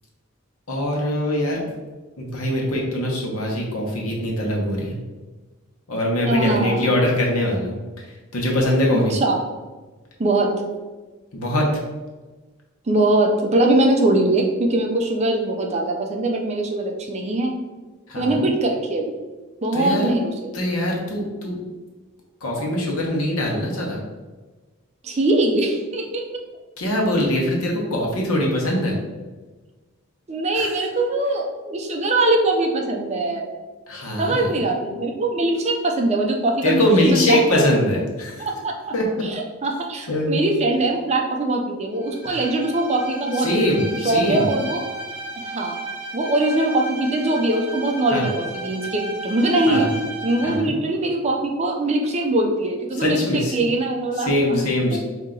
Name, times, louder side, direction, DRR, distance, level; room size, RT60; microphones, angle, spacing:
voice 1, 0.7-1.6 2.2-5.0 5.9-7.8 8.3-9.1 11.3-11.7 18.1-18.4 19.7-20.1 20.5-21.6 22.4-24.0 26.8-29.0 30.5-30.8 33.9-34.6 36.6-38.5 38.9-39.2 40.1-40.4 42.3-42.4 43.4-44.5 48.1-48.3 49.7-49.9 50.4-50.7 53.0-53.5 54.2-55.0, left 1 dB, 85° left, -1 dB, 1.1 m, -22 dB
voice 2, 6.2-6.9 8.9-9.4 10.2-10.6 12.9-17.5 18.2-19.1 19.6-20.5 25.0-26.2 30.3-33.5 34.2-37.6 38.4-38.7 39.2-43.5 44.0-44.8 45.4-45.8 46.1-49.9 50.2-54.6 54.9-55.0, right 2 dB, 30° right, 2 dB, 0.4 m, -22 dB
Bowed string instrument, 42.0-50.7, right 2 dB, 5° right, 0.8 m, -34 dB
4.4 x 2.8 x 3.8 m, 1.3 s
head